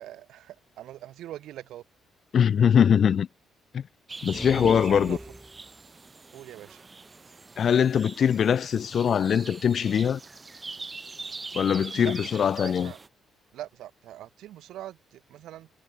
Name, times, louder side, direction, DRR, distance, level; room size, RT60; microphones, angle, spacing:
voice 1, 0.0-1.8 4.8-5.3 6.3-6.9 12.0-13.0 13.5-15.7, right 13 dB, 80° right, 2.1 m, -42 dB
voice 2, 2.3-3.3 3.7-3.8 4.2-5.2 7.6-10.2 11.5-12.9, left 8 dB, 55° left, 1.0 m, -22 dB
sound 1, 4.1-13.1, right 3 dB, 25° right, 4.9 m, -42 dB
sound 2, 4.2-5.8, right 1 dB, 5° right, 2.0 m, -37 dB
cardioid pair, 90°, 0 cm